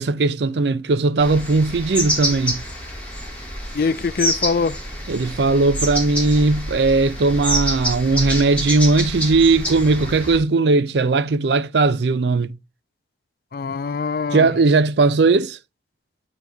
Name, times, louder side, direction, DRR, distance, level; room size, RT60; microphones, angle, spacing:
voice 1, 0.0-2.6 5.1-12.6 14.3-15.6, right 3 dB, 80° right, 0.5 m, -18 dB
sound 1, 1.2-10.4, equal, 10° left, 2.8 m, -27 dB
voice 2, 3.7-4.8 13.5-14.5, left 4 dB, 55° left, 0.3 m, -23 dB
9.0 x 4.0 x 3.5 m
head